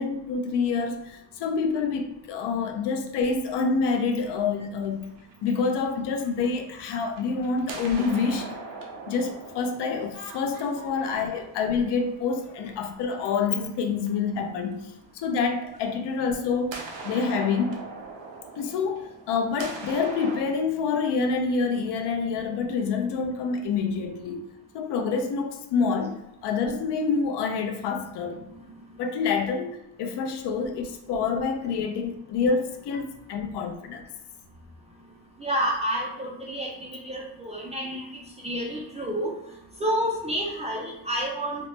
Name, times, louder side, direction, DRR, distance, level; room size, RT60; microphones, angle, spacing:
voice 1, 0.0-5.1 5.4-8.5 9.1-16.8 17.0-17.8 18.6-24.4 24.7-28.4 29.0-34.0, left 5 dB, 70° left, 0.6 m, -27 dB
sound 1, 4.9-6.6 7.0-14.3 15.8-15.9 16.7-20.4, right 3 dB, 85° right, 0.7 m, -41 dB
voice 2, 28.4-28.7 35.4-39.3 39.8-41.7, equal, 15° right, 0.3 m, -30 dB
3.0 x 2.0 x 3.1 m
cardioid pair, 145°, 43 cm